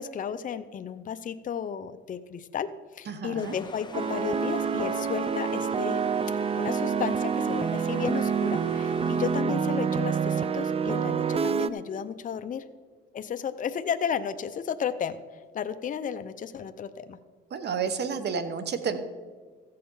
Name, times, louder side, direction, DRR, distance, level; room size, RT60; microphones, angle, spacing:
voice 1, 0.0-2.7 2.9-6.0 6.6-12.6 13.1-15.2 15.5-17.2, left 8 dB, 40° left, 10 dB, 0.6 m, -33 dB
voice 2, 3.1-3.6 17.5-19.0, right 6 dB, 55° right, 11 dB, 1.1 m, -30 dB
sound 1, 3.4-9.4, left 3 dB, 20° left, 1.0 m, -45 dB
sound 2, 3.9-11.7, right 6 dB, 30° right, 0.4 m, -27 dB
14.5 x 6.7 x 5.5 m, 1.5 s
cardioid pair, 90°, 20 cm